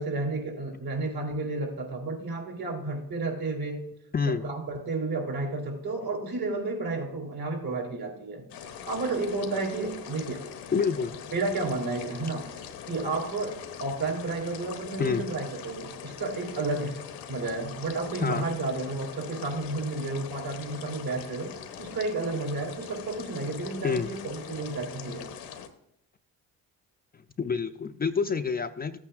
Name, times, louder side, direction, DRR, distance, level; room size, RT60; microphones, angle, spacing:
voice 1, 0.0-3.8 4.3-8.4 8.9-10.5 11.3-12.5 12.9-17.0 17.3-25.2, right 3 dB, 65° right, 1 dB, 3.3 m, -32 dB
voice 2, 4.1-4.5 10.7-11.1 15.0-15.2 18.2-18.5 23.8-24.1 27.4-29.0, left 5 dB, 25° left, 8 dB, 0.4 m, -27 dB
sound 1, 8.5-25.7, left 8 dB, 90° left, 1.1 m, -42 dB
14.0 x 8.6 x 2.4 m, 0.77 s
supercardioid pair, 70°, 39 cm